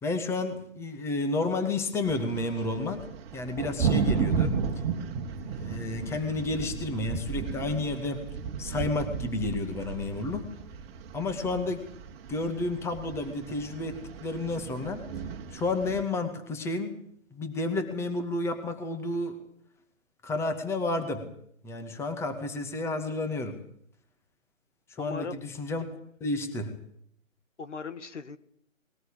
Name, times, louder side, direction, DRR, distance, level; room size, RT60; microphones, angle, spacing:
voice 1, 0.0-3.1 3.3-4.6 5.5-8.2 8.6-10.5 11.1-11.9 12.3-15.1 15.5-16.9 17.3-19.4 20.2-21.3 21.6-23.6 24.9-25.9 26.2-26.7, left 2 dB, 5° left, 7 dB, 2.2 m, -31 dB
sound 1, 2.0-16.0, right 6 dB, 20° right, 2.5 m, -34 dB
voice 2, 25.0-25.4 27.6-28.4, left 5 dB, 60° left, 12 dB, 2.1 m, -38 dB
21.5 x 20.0 x 8.8 m, 0.66 s
figure-of-eight pair, 145°, 40 cm